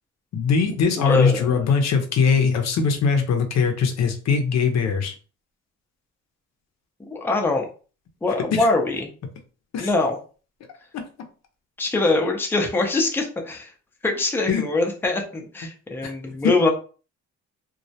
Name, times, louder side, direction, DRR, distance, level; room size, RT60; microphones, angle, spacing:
voice 1, 0.3-5.1 8.5-8.6 9.7-9.9 10.9-11.1 14.5-14.6 16.0-16.1 16.4-16.5, left 5 dB, 60° left, 5 dB, 0.6 m, -21 dB
voice 2, 1.0-1.7 7.1-7.7 8.2-9.1 9.8-10.2 11.8-13.7 14.0-16.7, left 2 dB, 5° left, 2 dB, 0.5 m, -23 dB
2.2 x 2.0 x 2.7 m, 0.37 s
cardioid pair, 90°, 30 cm